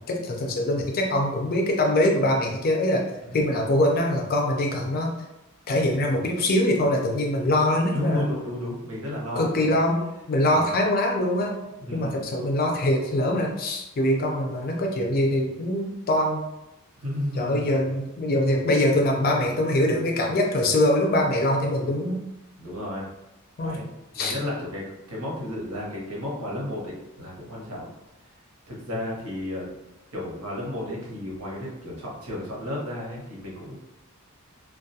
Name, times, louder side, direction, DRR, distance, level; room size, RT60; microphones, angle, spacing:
voice 1, 0.1-3.0 3.3-5.1 5.7-8.3 9.3-11.6 11.9-16.4 17.4-22.2 23.6-23.8 24.1-24.4, left 1 dB, 45° left, 1 dB, 0.4 m, -23 dB
voice 2, 7.9-9.7 10.5-10.7 11.8-12.2 17.0-17.8 22.6-23.1 23.6-23.9 24.1-27.9 28.7-29.7 30.1-33.8, left 1 dB, 80° right, -4 dB, 0.9 m, -33 dB
2.3 x 2.2 x 2.6 m, 0.93 s
head